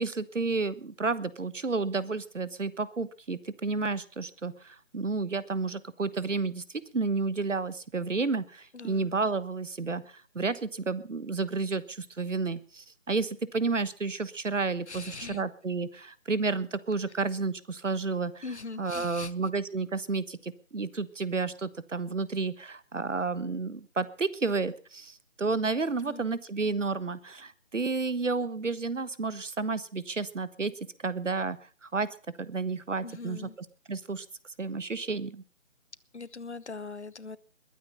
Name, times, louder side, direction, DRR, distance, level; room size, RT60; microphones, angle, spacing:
voice 1, 0.0-18.4 18.8-30.7 31.0-32.1 32.4-33.5 33.9-34.2 34.6-35.4, right 4 dB, 65° right, 17 dB, 1.3 m, -31 dB
voice 2, 8.7-9.1 14.9-15.4 18.4-19.3 26.0-26.4 33.0-33.6 36.1-37.4, left 4 dB, 60° left, 18 dB, 1.0 m, -41 dB
21.0 x 9.4 x 5.4 m, 0.38 s
figure-of-eight pair, 170°, 39 cm